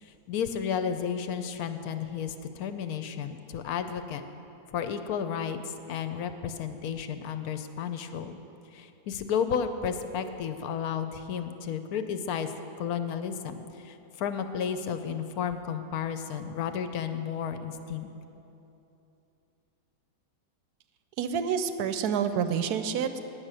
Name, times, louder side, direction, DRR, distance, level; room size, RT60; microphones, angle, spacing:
voice 1, 0.0-4.2 4.7-8.4 8.7-12.5 12.8-18.1, left 7 dB, 70° left, 9 dB, 1.0 m, -32 dB
voice 2, 21.2-23.2, right 7 dB, 70° right, 10 dB, 1.0 m, -28 dB
9.6 x 6.5 x 8.9 m, 2.9 s
omnidirectional pair, 1.9 m